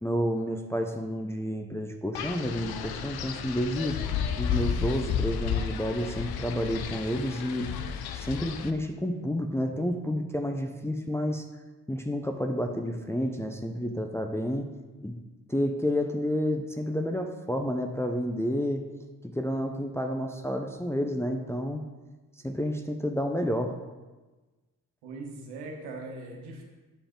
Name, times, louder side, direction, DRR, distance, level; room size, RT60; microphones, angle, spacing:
voice 1, 0.0-4.0 4.4-7.7 8.1-11.4 11.9-14.7 15.0-15.2 15.5-18.8 19.2-21.8 22.4-23.8, equal, 5° left, 3 dB, 0.6 m, -30 dB
Wind, 2.1-8.7, left 8 dB, 70° left, 0.6 m, -32 dB
voice 2, 25.0-26.6, right 2 dB, 90° right, -1 dB, 1.3 m, -40 dB
8.9 x 4.9 x 3.8 m, 1.2 s
supercardioid pair, 45°, 39 cm